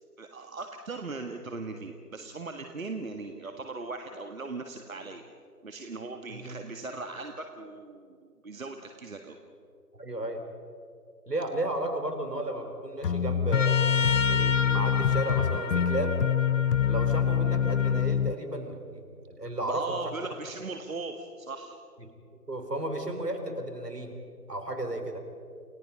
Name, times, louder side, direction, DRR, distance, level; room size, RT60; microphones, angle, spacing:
voice 1, 0.2-5.2 5.6-8.1 8.4-9.4 19.6-21.8, right 3 dB, 55° right, 5 dB, 1.7 m, -38 dB
voice 2, 10.0-10.4 11.3-13.9 14.3-16.1 16.9-20.0 22.0-22.1 22.5-24.1 24.5-25.2, right 1 dB, 75° right, 6 dB, 4.2 m, -33 dB
sound 1, 13.0-18.4, left 8 dB, 90° left, 0.7 m, -25 dB
Trumpet, 13.5-18.1, left 4 dB, 50° left, 1.2 m, -32 dB
29.5 x 18.0 x 5.5 m, 2.4 s
figure-of-eight pair, 160°, 47 cm